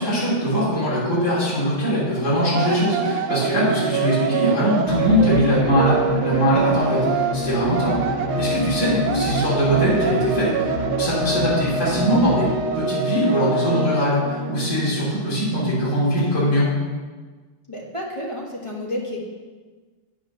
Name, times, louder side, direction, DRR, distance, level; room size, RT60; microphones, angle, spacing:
voice 1, 0.0-8.0 8.3-10.7 11.0-12.5 12.7-16.7, equal, 45° left, -9 dB, 4.1 m, -21 dB
sound 1, 2.5-15.3, right 5 dB, 80° right, 1.5 m, -25 dB
sound 2, 4.8-12.5, left 5 dB, 75° left, 1.9 m, -30 dB
voice 2, 17.7-19.3, left 1 dB, 15° left, -3 dB, 1.2 m, -30 dB
8.8 x 6.3 x 6.5 m, 1.4 s
omnidirectional pair, 2.3 m